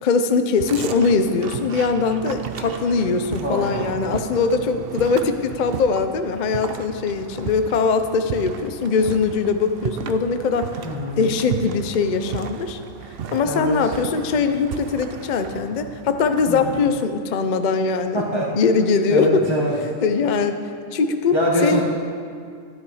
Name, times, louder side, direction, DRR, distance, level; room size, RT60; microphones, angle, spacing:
voice 1, 0.0-10.7 11.2-12.8 13.3-18.2 18.6-19.4 20.0-20.6 20.9-21.3 21.6-21.8, left 4 dB, 55° left, 8 dB, 0.5 m, -21 dB
sound 1, 0.6-17.0, right 7 dB, 60° right, 0.6 m, -34 dB
voice 2, 3.4-4.2 10.8-11.2 13.4-13.9 16.5-16.8 18.1-18.5 19.1-19.7 21.3-21.8, equal, 20° left, -4 dB, 1.4 m, -24 dB
13.0 x 10.5 x 4.8 m, 2.2 s
omnidirectional pair, 1.5 m